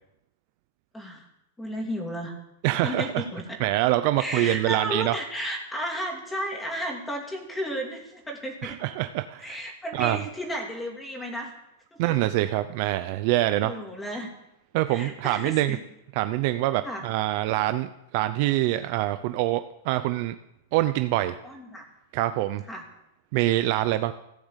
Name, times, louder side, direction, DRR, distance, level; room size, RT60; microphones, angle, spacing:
voice 1, 0.9-1.2 1.6-2.3 2.8-3.6 4.2-8.8 9.4-11.5 12.1-12.2 13.6-14.3 14.9-15.8 16.8-17.0 21.4-21.9 22.7-22.8, equal, 5° left, 2 dB, 2.6 m, -33 dB
voice 2, 2.6-3.2 3.6-5.2 8.6-9.6 9.9-10.2 12.0-13.7 14.7-15.8 16.2-20.4 20.7-21.4 22.1-22.6 23.3-24.1, right 15 dB, 40° right, 11 dB, 0.6 m, -25 dB
15.5 x 10.0 x 8.2 m, 0.83 s
supercardioid pair, 165°, 0 cm